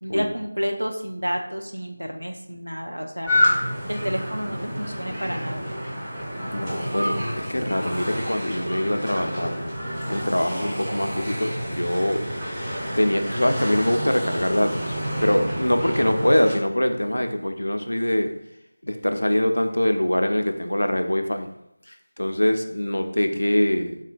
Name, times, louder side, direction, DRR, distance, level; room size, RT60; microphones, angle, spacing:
voice 1, 0.0-3.3 3.9-5.7, equal, 80° right, 3 dB, 0.5 m, -30 dB
sound 1, 3.3-16.6, equal, 10° right, 0.6 m, -28 dB
voice 2, 6.5-9.5 10.1-12.2 13.0-18.3 18.8-21.5 22.2-24.0, left 1 dB, 70° left, 6 dB, 0.3 m, -23 dB
3.7 x 2.1 x 2.5 m, 0.80 s
figure-of-eight pair, 170°, 0 cm